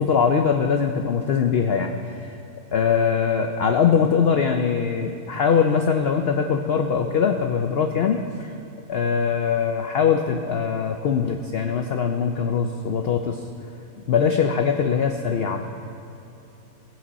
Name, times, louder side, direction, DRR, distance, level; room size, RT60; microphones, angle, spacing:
voice 1, 0.0-2.3 2.7-8.5 8.9-13.4 14.1-15.8, left 6 dB, 60° left, 5 dB, 0.7 m, -22 dB
18.0 x 7.7 x 4.1 m, 3.0 s
omnidirectional pair, 1.5 m